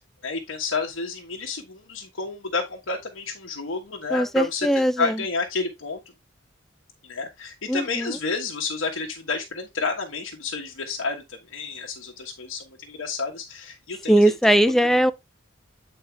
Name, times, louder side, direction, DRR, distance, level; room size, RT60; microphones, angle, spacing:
voice 1, 0.2-4.7 5.0-6.0 7.0-14.5, left 4 dB, 85° left, 1.3 m, -30 dB
voice 2, 4.1-5.2 7.7-8.2 14.1-15.1, right 1 dB, ahead, 0.4 m, -20 dB
8.7 x 4.5 x 3.4 m
head